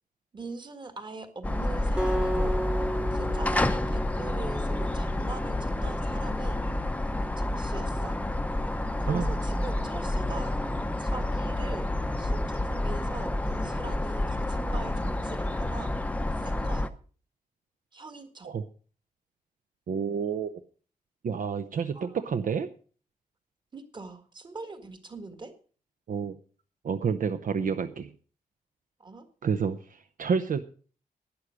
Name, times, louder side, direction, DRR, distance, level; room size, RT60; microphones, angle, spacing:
voice 1, 0.3-2.6 3.1-6.6 7.5-8.2 9.0-10.5 11.0-11.8 12.2-15.9 16.4-16.9 17.9-18.5 21.9-22.2 23.7-25.5 29.0-29.2, right 3 dB, 30° right, 8 dB, 1.7 m, -42 dB
sound 1, 1.4-16.9, left 1 dB, 10° left, 0.7 m, -29 dB
Acoustic guitar, 2.0-5.2, right 1 dB, 5° right, 1.1 m, -33 dB
voice 2, 19.9-20.5 21.2-22.7 26.1-26.4 26.8-28.1 29.4-30.6, right 6 dB, 65° right, 9 dB, 0.8 m, -29 dB
11.5 x 9.8 x 6.3 m, 0.41 s
wide cardioid pair, 175°, 15 cm